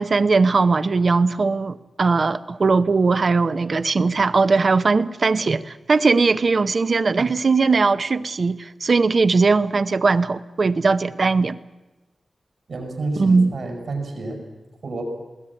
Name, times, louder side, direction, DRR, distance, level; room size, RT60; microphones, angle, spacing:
voice 1, 0.0-11.6 13.2-13.5, right 4 dB, 45° right, 0.7 m, -19 dB
voice 2, 12.7-14.4 14.8-15.0, right 3 dB, 65° right, 5.9 m, -29 dB
21.0 x 17.5 x 9.8 m
wide cardioid pair, 175°, 0 cm